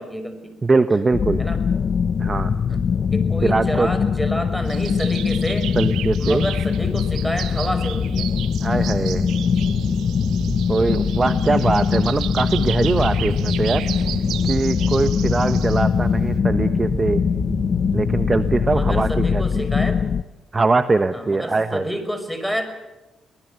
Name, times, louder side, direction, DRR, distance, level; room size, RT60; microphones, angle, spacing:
voice 1, 0.0-0.5 1.4-1.6 2.7-5.7 6.2-8.3 18.7-20.1 21.1-22.6, equal, ahead, 8 dB, 5.5 m, -29 dB
voice 2, 0.6-1.4 2.2-2.5 3.4-3.9 5.7-6.5 8.6-9.3 10.7-13.8 14.5-17.2 17.9-19.6 20.5-21.8, right 3 dB, 25° right, 10 dB, 1.1 m, -21 dB
sound 1, 1.1-20.2, left 6 dB, 50° left, 0.8 m, -22 dB
sound 2, 4.7-16.4, right 12 dB, 80° right, 1.1 m, -34 dB
sound 3, 9.0-18.8, right 6 dB, 60° right, 2.9 m, -34 dB
24.5 x 19.5 x 8.1 m, 1.0 s
cardioid pair, 90°, 0 cm